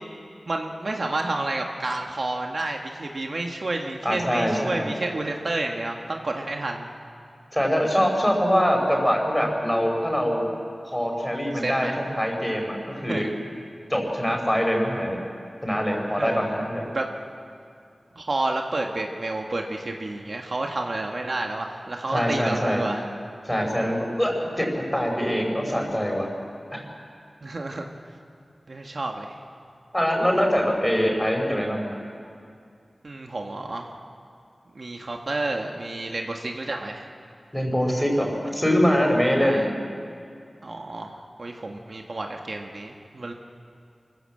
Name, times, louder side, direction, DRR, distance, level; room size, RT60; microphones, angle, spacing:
voice 1, 0.5-6.9 11.5-12.0 13.1-13.3 16.2-16.6 16.9-17.1 18.1-23.0 27.4-27.9 28.7-29.4 33.0-33.9 34.7-37.0 39.4-39.7 40.6-43.3, right 2 dB, 65° right, 2 dB, 1.6 m, -30 dB
voice 2, 4.0-4.9 7.5-10.5 10.9-13.3 13.9-15.2 15.6-16.9 22.1-22.9 23.4-24.7 24.9-26.3 26.7-26.8 29.9-31.9 37.5-39.6, equal, 10° left, 1 dB, 5.4 m, -23 dB
24.5 x 15.5 x 7.7 m, 2.4 s
cardioid pair, 45°, 0 cm